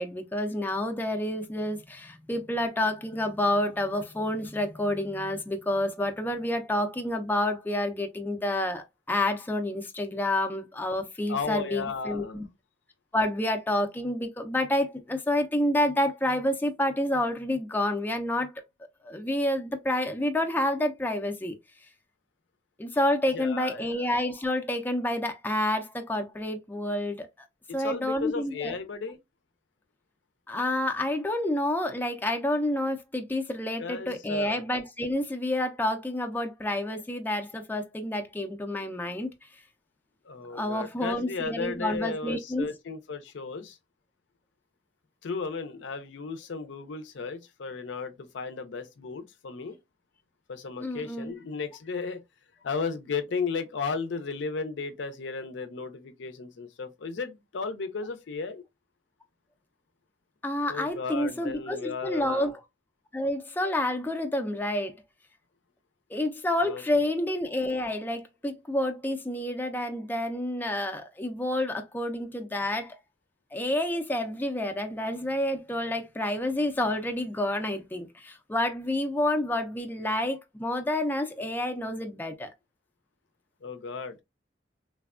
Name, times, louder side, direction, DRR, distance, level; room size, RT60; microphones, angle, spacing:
voice 1, 0.0-12.5 13.1-18.5 19.0-21.5 22.8-27.3 27.7-28.7 30.5-39.3 40.5-42.7 50.8-51.4 60.4-62.6 63.1-64.9 66.1-73.0 73.5-82.5, left 1 dB, 10° left, 0.4 m, -29 dB
voice 2, 11.3-12.4 23.3-24.0 27.7-29.2 33.8-34.6 40.2-43.8 45.2-49.8 50.5-52.2 52.6-58.6 60.7-62.5 66.6-67.1 83.6-84.2, left 4 dB, 70° left, 0.5 m, -35 dB
3.2 x 2.1 x 2.3 m
head